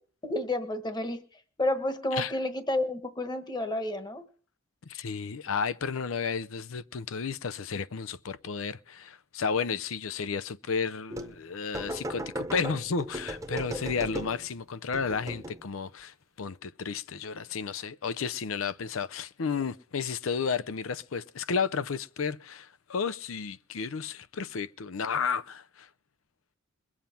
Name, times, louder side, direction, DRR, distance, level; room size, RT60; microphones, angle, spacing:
voice 1, 0.2-4.3 13.5-13.8, left 1 dB, 20° left, 1.3 m, -31 dB
voice 2, 4.9-25.9, left 5 dB, 80° left, 0.6 m, -32 dB
sound 1, 11.1-11.4 11.7-14.5 14.9-15.7, right 1 dB, 15° right, 0.9 m, -37 dB
21.5 x 7.3 x 5.8 m
head